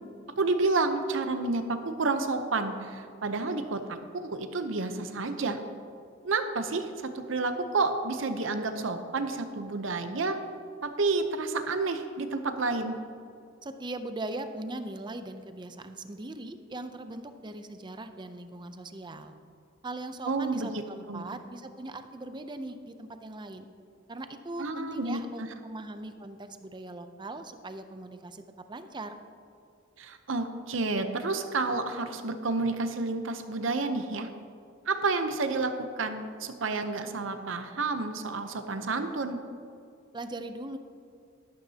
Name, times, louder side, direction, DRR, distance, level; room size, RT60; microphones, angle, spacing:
voice 1, 0.4-3.8 4.1-5.6 6.2-6.9 7.1-10.4 10.8-13.0 20.2-20.8 21.1-21.3 24.6-25.5 30.0-34.3 34.9-39.4, right 3 dB, 65° right, 8 dB, 0.7 m, -30 dB
voice 2, 13.6-19.3 19.8-23.7 24.1-28.4 28.7-29.2 40.1-40.8, right 2 dB, 20° right, 9 dB, 0.5 m, -40 dB
12.5 x 12.0 x 2.8 m, 2.4 s
head